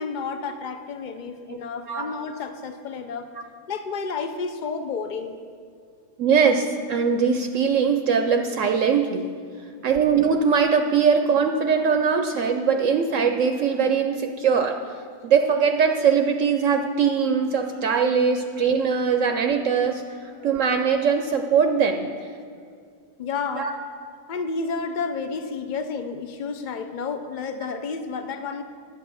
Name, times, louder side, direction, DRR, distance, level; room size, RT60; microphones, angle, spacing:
voice 1, 0.0-3.3 3.7-5.3 9.6-9.8 19.3-19.4 20.3-20.5 22.6-22.8 23.2-23.7 24.3-28.6, left 5 dB, 70° left, 8 dB, 0.4 m, -31 dB
voice 2, 6.2-9.3 9.8-14.8 15.2-20.0 20.4-22.3 23.5-23.7, right 6 dB, 65° right, 6 dB, 0.9 m, -21 dB
10.5 x 8.2 x 6.2 m, 2.2 s
omnidirectional pair, 1.6 m